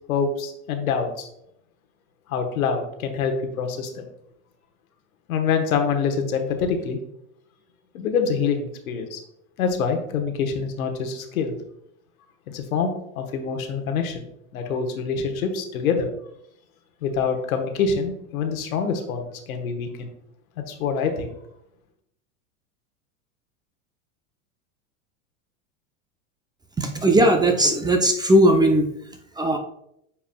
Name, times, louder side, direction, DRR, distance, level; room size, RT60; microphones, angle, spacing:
voice 1, 0.1-1.3 2.3-4.1 5.3-7.0 7.9-9.2 9.6-11.5 12.5-12.9 13.1-14.2 14.5-16.1 17.0-20.1 20.7-21.3, left 6 dB, 85° left, 5 dB, 1.2 m, -25 dB
voice 2, 26.8-28.9 29.4-29.6, right 1 dB, 10° right, 4 dB, 0.5 m, -18 dB
8.8 x 4.7 x 2.2 m, 0.75 s
hypercardioid pair, 110°, 41 cm